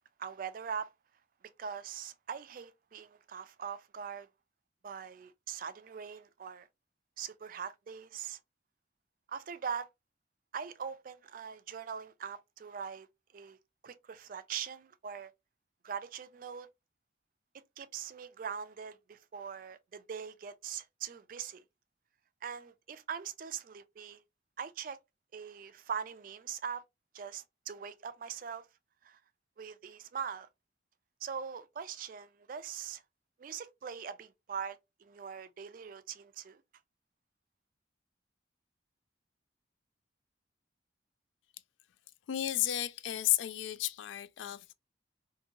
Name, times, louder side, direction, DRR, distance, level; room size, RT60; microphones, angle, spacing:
voice 1, 0.2-0.9 1.6-4.3 4.8-6.7 7.2-8.4 9.3-9.9 10.5-13.1 13.3-13.6 13.8-15.3 15.8-16.7 17.8-21.6 22.4-24.2 24.6-25.0 25.3-26.8 27.1-28.7 29.0-29.2 29.6-30.5 31.2-33.0 33.4-36.6, right 7 dB, 45° right, 0.3 m, -42 dB
voice 2, 42.3-44.7, left 13 dB, 75° left, 0.3 m, -32 dB
2.8 x 2.6 x 2.5 m
head